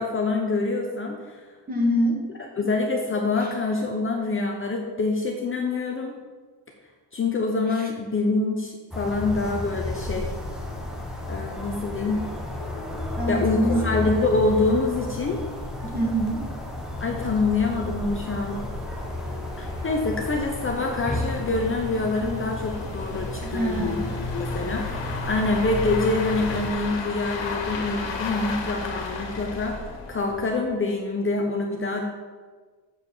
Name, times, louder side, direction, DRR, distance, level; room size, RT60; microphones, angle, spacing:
voice 1, 0.0-1.4 2.6-6.2 7.1-10.3 11.3-12.3 13.3-15.4 17.0-18.6 19.6-29.8 30.1-32.1, left 3 dB, 30° left, 1 dB, 0.8 m, -26 dB
voice 2, 1.7-2.2 3.4-3.5 7.7-7.9 13.2-13.8 15.8-16.4 23.5-24.1, right 1 dB, 20° right, -1 dB, 1.9 m, -25 dB
sound 1, 8.9-26.7, left 2 dB, ahead, 1.2 m, -32 dB
sound 2, 15.6-15.7 16.3-30.7, left 3 dB, 85° left, 1.7 m, -35 dB
7.4 x 6.7 x 6.9 m, 1.4 s
wide cardioid pair, 170°, 43 cm